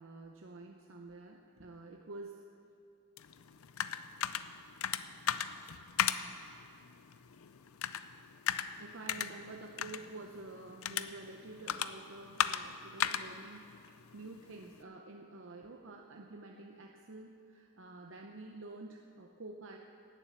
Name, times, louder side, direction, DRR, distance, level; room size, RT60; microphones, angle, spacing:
voice 1, 0.0-2.4 8.8-19.8, right 2 dB, 65° right, 2 dB, 0.7 m, -49 dB
sound 1, 3.2-14.8, left 9 dB, 85° left, 0.5 m, -38 dB
18.5 x 7.4 x 7.1 m, 2.6 s
head